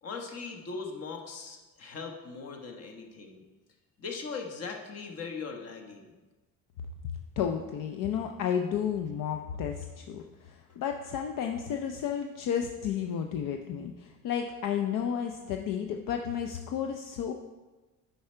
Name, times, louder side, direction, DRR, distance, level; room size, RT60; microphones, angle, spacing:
voice 1, 0.0-3.4 4.0-6.1, left 4 dB, 45° left, 3 dB, 1.2 m, -40 dB
voice 2, 7.4-17.3, left 8 dB, 70° left, 4 dB, 0.6 m, -32 dB
9.4 x 5.6 x 4.4 m, 1.2 s
cardioid pair, 160°, 33 cm